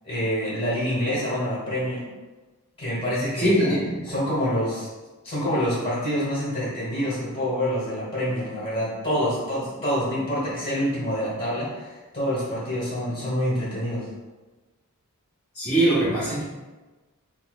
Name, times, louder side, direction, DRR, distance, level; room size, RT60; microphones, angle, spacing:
voice 1, 0.0-2.1 2.8-3.7 4.0-4.9 5.2-14.1, equal, 25° left, -8 dB, 1.4 m, -26 dB
voice 2, 3.4-4.0 15.5-16.4, right 1 dB, 5° left, -16 dB, 1.2 m, -21 dB
5.6 x 2.0 x 2.4 m, 1.2 s
head